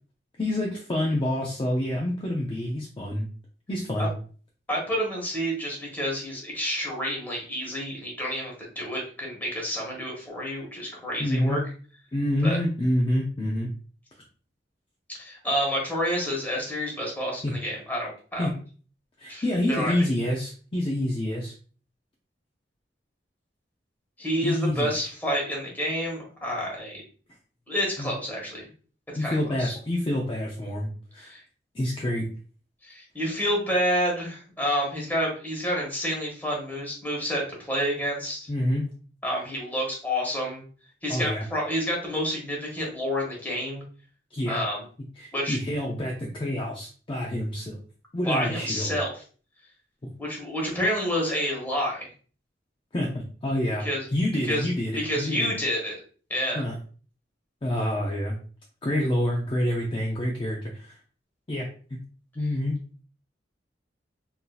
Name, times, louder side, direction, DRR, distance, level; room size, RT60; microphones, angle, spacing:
voice 1, 0.4-3.3 3.7-4.1 11.2-11.6 12.1-13.7 17.4-17.5 18.4-18.5 19.2-21.5 24.4-24.9 28.0-28.1 29.2-31.3 31.7-32.3 38.5-38.9 41.1-41.4 44.3-44.6 45.2-47.8 48.1-49.0 50.0-50.1 52.9-53.9 54.1-55.5 56.5-56.8 57.6-58.4 58.8-61.0 61.5-62.0 62.4-62.8, left 1 dB, 30° left, -2 dB, 0.5 m, -27 dB
voice 2, 4.7-11.6 12.4-12.6 15.2-18.5 19.3-20.0 24.2-27.0 27.7-28.7 29.1-29.8 31.2-31.4 32.8-38.5 39.2-40.6 41.0-43.8 44.5-44.8 45.3-45.6 48.2-49.1 50.2-52.1 53.8-54.0 54.4-54.7 54.9-56.0 56.3-56.6, equal, 10° left, -2 dB, 1.2 m, -29 dB
3.9 x 2.7 x 2.4 m, 0.41 s
head